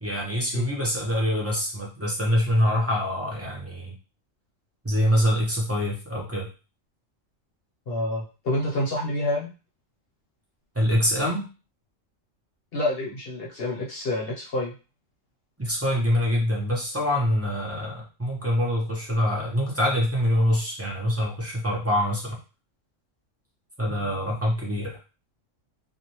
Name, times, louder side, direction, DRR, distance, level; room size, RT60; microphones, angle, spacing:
voice 1, 0.0-3.9 4.8-6.5 10.7-11.5 15.6-22.4 23.8-25.0, equal, 20° right, -3 dB, 0.4 m, -25 dB
voice 2, 7.9-9.5 12.7-14.7, left 1 dB, 55° left, -3 dB, 0.9 m, -28 dB
2.6 x 2.0 x 2.9 m, 0.33 s
omnidirectional pair, 1.3 m